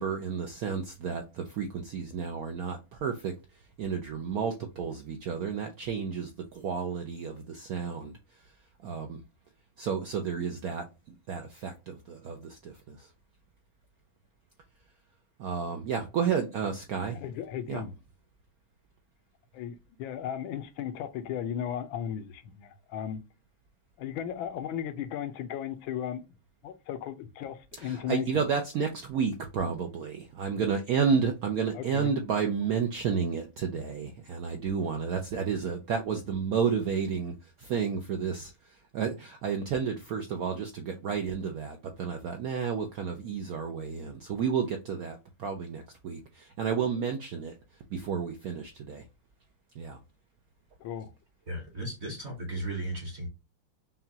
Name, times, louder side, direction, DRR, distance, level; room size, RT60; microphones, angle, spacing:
voice 1, 0.0-3.3 3.8-8.1 8.8-9.2 9.8-10.8 11.3-13.1 15.4-17.2 17.7-17.8 27.8-38.5 38.9-47.5 47.9-49.0 49.8-50.0, right 6 dB, 75° right, 0.8 m, -31 dB
voice 2, 17.1-18.0 19.5-23.2 24.0-26.2 26.6-28.4 31.7-32.1 50.8-51.1, left 9 dB, 80° left, 1.4 m, -36 dB
voice 3, 51.5-53.3, right 1 dB, 45° right, 1.0 m, -35 dB
5.7 x 2.3 x 2.7 m
omnidirectional pair, 2.2 m